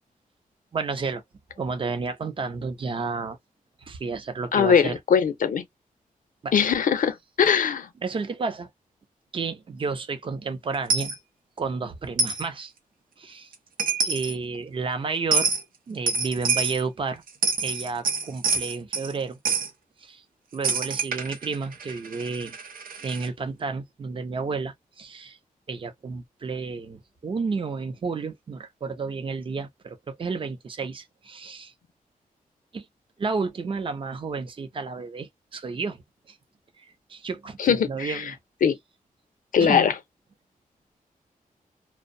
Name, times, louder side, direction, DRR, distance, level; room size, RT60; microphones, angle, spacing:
voice 1, 0.7-1.2 1.6-3.4 3.9-5.0 6.4-6.5 8.0-8.7 9.3-11.2 11.6-12.7 13.2-13.5 14.0-15.5 15.9-17.2 17.6-19.4 20.0-20.2 20.5-22.6 23.0-25.4 25.7-31.7 32.7-32.9 33.2-36.0 37.1-38.3 39.6-39.9, right 4 dB, 35° right, 0.5 m, -31 dB
voice 2, 4.5-5.6 6.5-7.9 37.6-38.3 38.6-38.8 39.5-39.9, left 7 dB, 70° left, 0.6 m, -21 dB
Coin (dropping), 10.9-11.2 12.2-12.4 13.5-13.6 13.8-14.3 15.3-15.6 16.1-16.8 17.3-19.1 19.5-19.7 20.6-23.3, right 4 dB, 80° right, 0.6 m, -26 dB
2.6 x 2.0 x 2.5 m
wide cardioid pair, 165°, 14 cm